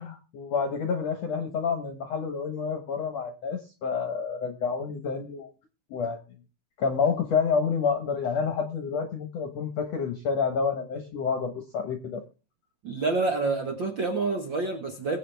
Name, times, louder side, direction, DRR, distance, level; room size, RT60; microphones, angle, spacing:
voice 1, 0.0-5.5 5.9-6.2 6.8-12.2, left 5 dB, 60° left, 6 dB, 1.8 m, -29 dB
voice 2, 12.8-15.2, right 3 dB, 90° right, 4 dB, 1.0 m, -27 dB
21.5 x 8.3 x 3.4 m, 0.32 s
omnidirectional pair, 4.4 m